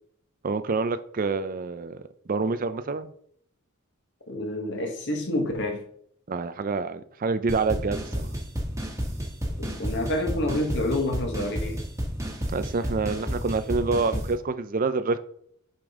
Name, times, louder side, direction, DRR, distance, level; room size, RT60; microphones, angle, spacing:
voice 1, 0.4-2.0 2.3-3.1 6.3-8.3 12.5-15.2, right 4 dB, 40° right, 0.4 m, -27 dB
voice 2, 4.3-5.8 9.6-11.8, left 1 dB, 55° left, 1.4 m, -28 dB
sound 1, 7.5-14.3, equal, 15° right, 1.4 m, -31 dB
8.6 x 5.2 x 3.6 m
head